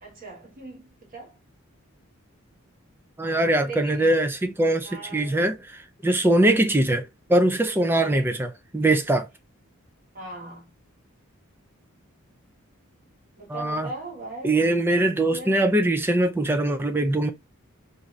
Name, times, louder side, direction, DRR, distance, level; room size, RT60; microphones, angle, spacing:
voice 1, 0.0-1.3 3.6-4.2 4.8-5.4 7.9-8.4 10.1-10.7 13.4-14.7 15.1-15.7, right 3 dB, 40° right, 1.2 m, -40 dB
voice 2, 3.2-5.5 6.0-7.0 7.3-9.3 13.5-13.9 14.4-17.3, right 1 dB, 10° right, 0.4 m, -22 dB
2.7 x 2.5 x 3.1 m
head